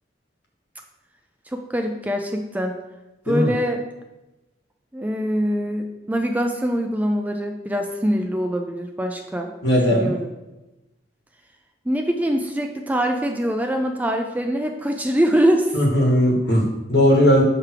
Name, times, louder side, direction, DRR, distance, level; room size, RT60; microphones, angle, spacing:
voice 1, 1.5-2.8 3.3-3.8 4.9-9.5 9.9-10.3 11.9-15.8 16.3-16.4, equal, 10° right, 4 dB, 0.3 m, -23 dB
voice 2, 9.6-10.1 15.7-17.4, equal, 65° left, 0 dB, 1.3 m, -18 dB
5.9 x 3.3 x 5.8 m, 1.0 s
head